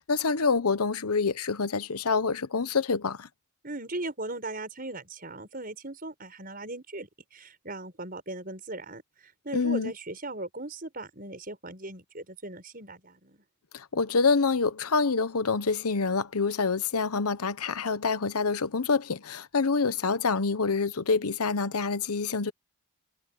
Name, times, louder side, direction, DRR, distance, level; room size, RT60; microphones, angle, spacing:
voice 1, 0.0-3.3 9.5-9.9 13.7-22.5, left 4 dB, 90° left, 1.0 m, -26 dB
voice 2, 3.6-13.4, right 2 dB, 40° right, 6.0 m, -38 dB
head